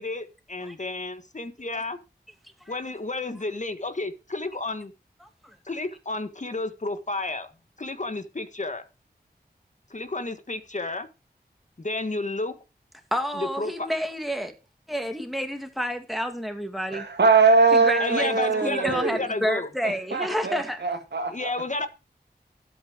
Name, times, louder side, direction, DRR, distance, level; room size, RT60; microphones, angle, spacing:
voice 1, 0.0-2.0 2.7-4.9 5.7-7.5 7.8-8.8 9.9-11.1 11.8-12.6 13.4-13.9 18.0-19.7 21.3-21.9, left 2 dB, 45° left, 1.7 m, -31 dB
voice 2, 5.2-5.6 13.1-14.5 14.9-17.1 17.7-20.8, equal, ahead, 2.5 m, -30 dB
voice 3, 16.9-19.3 19.8-21.5, right 4 dB, 85° right, 2.1 m, -22 dB
12.5 x 8.4 x 5.1 m
wide cardioid pair, 55°, 17 cm